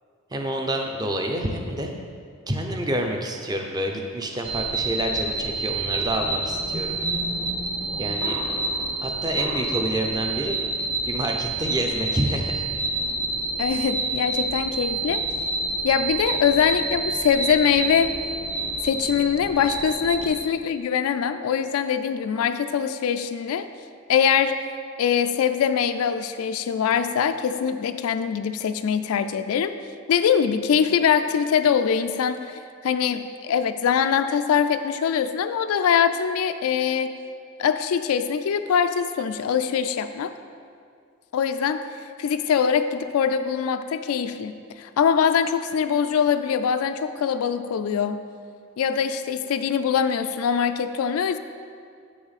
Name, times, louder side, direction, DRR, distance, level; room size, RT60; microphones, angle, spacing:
voice 1, 0.3-2.0 2.5-7.0 8.0-8.4 9.0-10.6 11.0-12.6, right 1 dB, 20° right, 3 dB, 0.5 m, -28 dB
sound 1, 4.4-20.4, right 2 dB, 45° right, 1.3 m, -28 dB
voice 2, 13.6-15.2 15.8-18.2 18.8-23.7 24.1-24.6 25.0-29.7 30.1-37.1 37.6-40.3 41.3-41.9 42.2-48.3 48.8-51.4, left 7 dB, 90° left, 9 dB, 0.3 m, -23 dB
7.9 x 6.1 x 4.1 m, 2.2 s
head